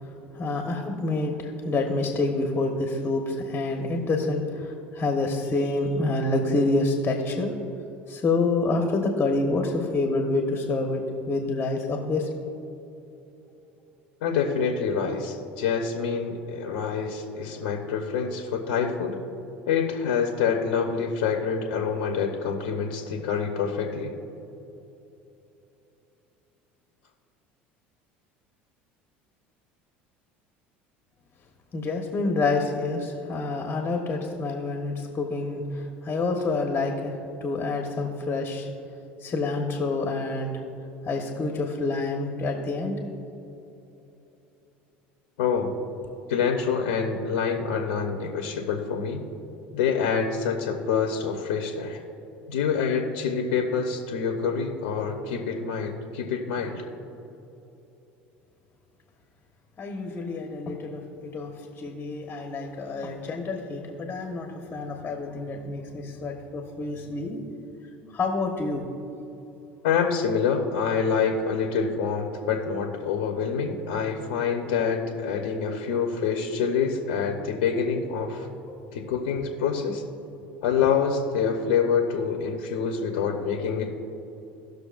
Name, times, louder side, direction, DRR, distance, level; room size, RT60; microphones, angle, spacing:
voice 1, 0.0-7.6 8.1-12.3 31.7-38.7 39.2-40.6 41.0-43.0 59.8-68.9 78.7-78.9, left 3 dB, 35° left, 2 dB, 1.4 m, -28 dB
voice 2, 14.2-19.2 19.7-24.1 45.4-45.7 46.3-49.2 49.7-52.0 52.5-56.8 69.8-78.5 78.9-80.0 80.6-83.9, left 6 dB, 80° left, 2 dB, 1.1 m, -26 dB
18.0 x 6.4 x 2.6 m, 3.0 s
hypercardioid pair, 80°, 6 cm